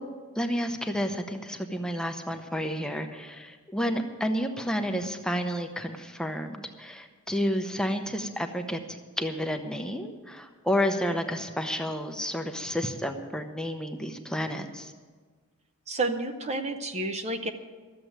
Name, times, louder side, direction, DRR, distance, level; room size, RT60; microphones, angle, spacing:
voice 1, 0.4-14.9, equal, 5° left, 5 dB, 0.8 m, -31 dB
voice 2, 15.9-17.5, right 2 dB, 30° right, 7 dB, 0.7 m, -30 dB
13.0 x 7.7 x 9.1 m, 1.5 s
head